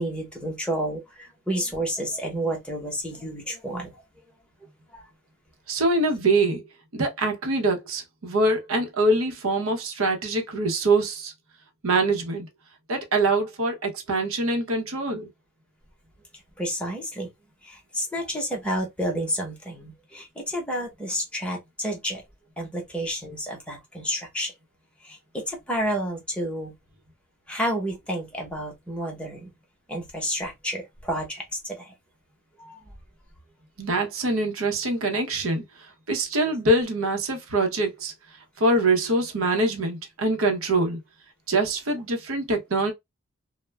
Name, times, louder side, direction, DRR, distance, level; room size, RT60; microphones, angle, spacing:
voice 1, 0.0-4.0 4.9-5.0 16.6-17.3 17.6-22.2 22.6-24.5 25.0-26.7 27.5-29.5 29.9-31.9 32.6-32.8, equal, 5° left, 0.8 m, -30 dB
voice 2, 5.7-6.6 6.9-11.3 11.8-12.5 12.9-15.3 33.8-35.6 36.1-38.1 38.6-41.0 41.5-42.9, right 2 dB, 80° right, 0.7 m, -24 dB
2.2 x 2.0 x 3.2 m
head